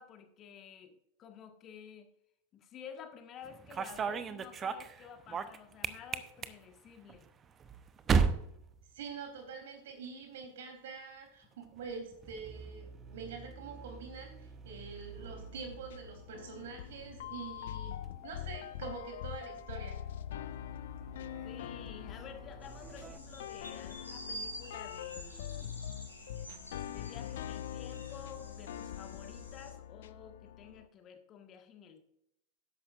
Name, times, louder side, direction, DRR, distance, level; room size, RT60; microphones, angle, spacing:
voice 1, 0.0-2.1 2.5-7.3 21.4-25.9 26.9-32.0, left 8 dB, 30° left, 6 dB, 1.6 m, -51 dB
sound 1, 3.4-9.6 9.9-10.4 11.5-23.2, right 5 dB, 25° right, 0.8 m, -39 dB
voice 2, 8.9-20.0, right 5 dB, 55° right, 3 dB, 3.4 m, -45 dB
sound 2, 15.2-30.9, left 11 dB, 55° left, 0.5 m, -44 dB
sound 3, 22.6-29.7, equal, 85° left, 3.7 m, -48 dB
13.0 x 10.5 x 2.5 m, 0.78 s
figure-of-eight pair, 90°, 0 cm